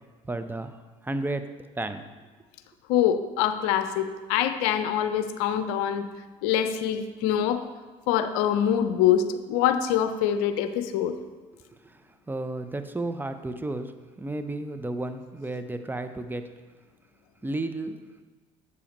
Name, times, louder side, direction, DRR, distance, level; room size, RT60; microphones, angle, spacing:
voice 1, 0.2-0.7 1.0-1.5 1.8-2.1 12.3-13.9 14.2-16.4 17.4-18.0, right 2 dB, 10° right, 9 dB, 0.6 m, -32 dB
voice 2, 2.9-6.0 6.4-7.6 8.1-11.2, left 9 dB, 75° left, 10 dB, 0.5 m, -24 dB
8.1 x 6.9 x 3.0 m, 1.3 s
hypercardioid pair, 70°, 16 cm